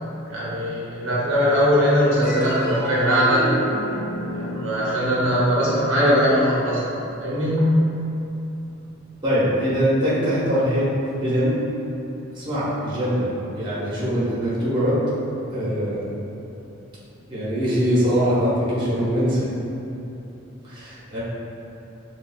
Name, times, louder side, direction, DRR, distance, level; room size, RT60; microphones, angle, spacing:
voice 1, 0.3-3.5 4.3-6.8 7.2-7.7, equal, 70° right, -7 dB, 0.8 m, -20 dB
sound 1, 2.2-8.9, right 1 dB, 50° left, 0.8 m, -33 dB
voice 2, 9.2-10.8 11.2-11.6 12.3-15.0 15.5-16.1 17.3-19.5 20.7-21.2, equal, 25° right, -10 dB, 1.0 m, -22 dB
6.3 x 2.4 x 2.2 m, 2.9 s
head